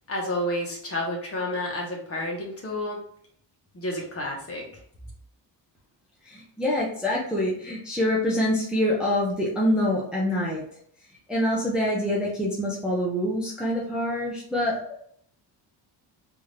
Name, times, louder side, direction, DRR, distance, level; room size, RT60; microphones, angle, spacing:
voice 1, 0.1-3.0 3.7-4.7, left 1 dB, 30° left, -1 dB, 1.1 m, -30 dB
voice 2, 6.3-10.6 11.3-15.0, left 1 dB, ahead, -6 dB, 0.7 m, -25 dB
3.6 x 2.6 x 3.2 m, 0.62 s
cardioid pair, 145°, 43 cm